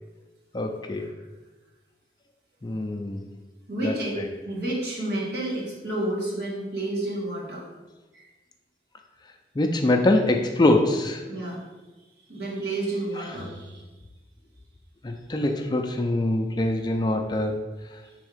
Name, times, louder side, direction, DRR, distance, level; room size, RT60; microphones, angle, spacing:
voice 1, 0.5-1.1 2.6-3.3 3.8-4.3 9.6-11.2 15.0-17.6, left 1 dB, 25° left, 4 dB, 0.4 m, -24 dB
voice 2, 3.7-4.1 4.4-7.7 8.1-8.3 11.3-11.6 12.3-13.8 18.0-18.1, right 1 dB, 65° right, -5 dB, 1.9 m, -30 dB
5.4 x 3.5 x 5.0 m, 1.2 s
head